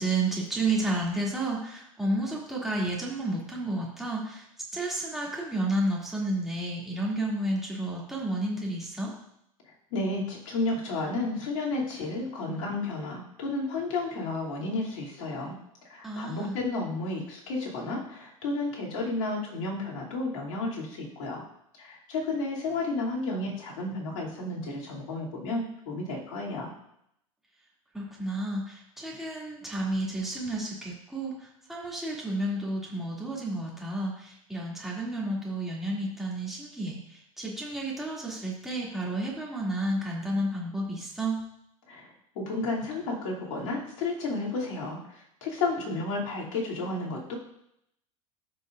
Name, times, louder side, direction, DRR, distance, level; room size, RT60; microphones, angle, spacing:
voice 1, 0.0-4.4 4.7-9.1 16.0-16.6 27.9-41.4, right 1 dB, ahead, -4 dB, 2.5 m, -31 dB
voice 2, 9.9-15.5 15.8-21.4 21.8-26.7 41.9-47.3, left 2 dB, 65° left, -3 dB, 2.8 m, -32 dB
13.5 x 5.4 x 2.5 m, 0.76 s
hypercardioid pair, 90°, 18 cm